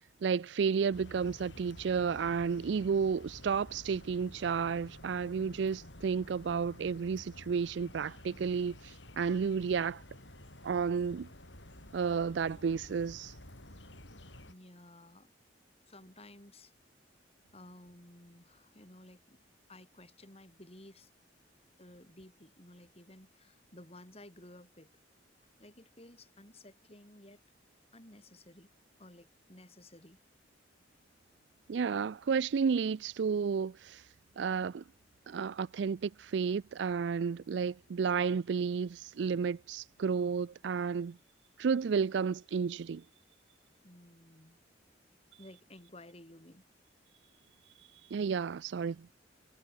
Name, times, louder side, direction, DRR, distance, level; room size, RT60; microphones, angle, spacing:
voice 1, 0.2-10.0 10.6-11.3 11.9-13.3 31.7-34.0 34.4-34.8 35.3-41.2 41.6-43.0 48.1-49.1, right 6 dB, 70° right, 0.4 m, -32 dB
sound 1, 0.9-14.5, left 1 dB, 75° left, 7.8 m, -52 dB
voice 2, 14.5-15.3 15.8-16.7 17.5-19.4 19.7-21.1 21.8-24.9 25.6-27.4 27.9-28.7 29.0-30.2 43.8-44.6 45.4-46.6, left 1 dB, 35° left, 7.5 m, -55 dB
head